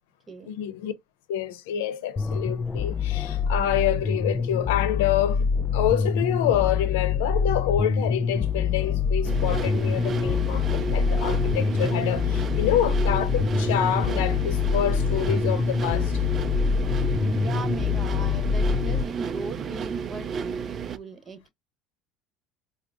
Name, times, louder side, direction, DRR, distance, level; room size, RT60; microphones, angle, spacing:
voice 1, 0.5-0.9 1.3-16.2, left 11 dB, 85° left, 0.6 m, -27 dB
sound 1, 2.2-19.0, left 6 dB, 25° left, 0.4 m, -25 dB
sound 2, 9.2-21.0, right 6 dB, 40° right, 0.4 m, -32 dB
voice 2, 17.3-21.5, right 3 dB, 25° right, 1.1 m, -38 dB
4.6 x 2.0 x 2.5 m
supercardioid pair, 105°, 0 cm